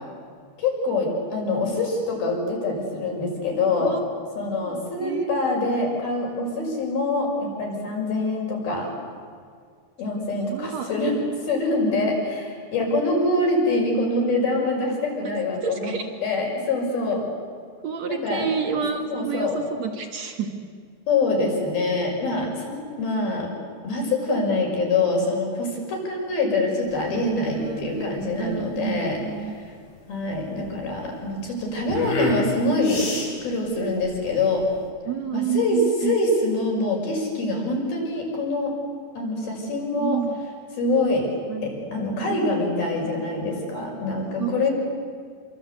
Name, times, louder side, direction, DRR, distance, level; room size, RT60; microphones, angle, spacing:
voice 1, 0.6-4.0 4.4-8.9 10.0-11.1 11.4-15.9 16.2-17.2 18.1-18.5 19.1-19.6 21.1-23.5 23.8-29.2 30.1-33.1 33.4-34.6 35.3-38.8 39.2-40.2 40.8-41.3 41.6-44.7, left 2 dB, 55° left, 0 dB, 7.6 m, -25 dB
voice 2, 4.6-5.3 10.5-10.9 15.6-16.1 17.8-20.6 27.5-29.5 31.1-31.4 35.1-36.1 40.0-40.4 41.5-41.7 42.2-42.4 44.4-44.7, right 8 dB, 60° right, 5 dB, 1.9 m, -29 dB
sound 1, 26.8-34.9, left 1 dB, 70° left, 8.9 m, -34 dB
28.5 x 25.5 x 8.3 m, 2.1 s
omnidirectional pair, 5.3 m